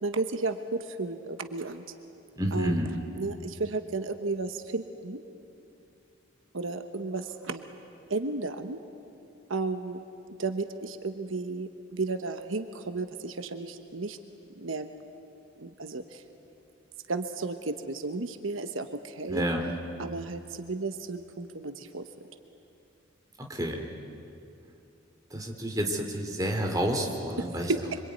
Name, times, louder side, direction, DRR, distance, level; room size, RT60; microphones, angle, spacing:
voice 1, 0.0-1.8 2.5-5.2 6.5-7.7 8.1-8.8 9.5-10.0 10.4-14.2 14.5-14.9 15.6-16.2 17.1-19.5 20.0-22.1 27.4-28.0, right 3 dB, 75° right, 8 dB, 1.2 m, -33 dB
voice 2, 2.4-2.9 19.3-19.7 23.4-23.8 25.3-27.7, equal, 15° right, 1 dB, 2.9 m, -29 dB
25.5 x 25.0 x 9.4 m, 2.7 s
head